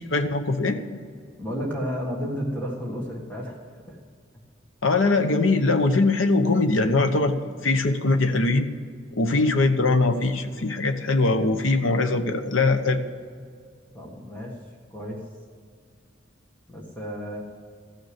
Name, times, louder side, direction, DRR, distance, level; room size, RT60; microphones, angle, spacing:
voice 1, 0.1-0.8 4.8-7.4 7.6-8.7 9.1-13.0, left 3 dB, 90° left, 7 dB, 0.9 m, -21 dB
voice 2, 1.4-3.6 3.9-4.0 9.4-9.5 13.9-14.5 14.9-15.2 16.7-17.4, equal, 10° left, -3 dB, 1.7 m, -32 dB
14.5 x 6.7 x 7.8 m, 2.1 s
head